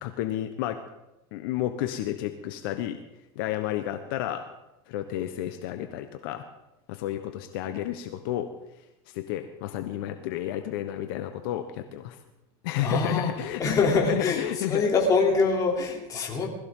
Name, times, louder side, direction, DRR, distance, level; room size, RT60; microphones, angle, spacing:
voice 1, 0.0-0.8 1.3-3.0 3.3-4.5 4.9-6.4 6.9-8.5 9.1-12.2 12.6-14.8, left 12 dB, 75° left, 8 dB, 1.1 m, -31 dB
voice 2, 12.8-13.3 13.6-16.5, left 4 dB, 30° left, 0 dB, 3.2 m, -24 dB
20.5 x 14.5 x 3.8 m, 0.92 s
supercardioid pair, 145°, 12 cm